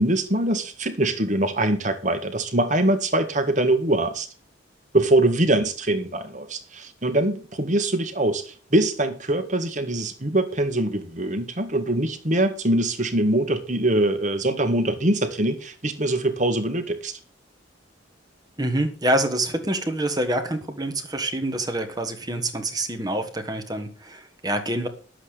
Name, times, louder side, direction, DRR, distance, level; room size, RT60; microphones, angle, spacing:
voice 1, 0.0-4.3 4.9-17.2, right 1 dB, 40° right, 1.6 m, -23 dB
voice 2, 18.6-24.9, right 1 dB, 20° right, 1.4 m, -26 dB
11.0 x 7.8 x 6.5 m
head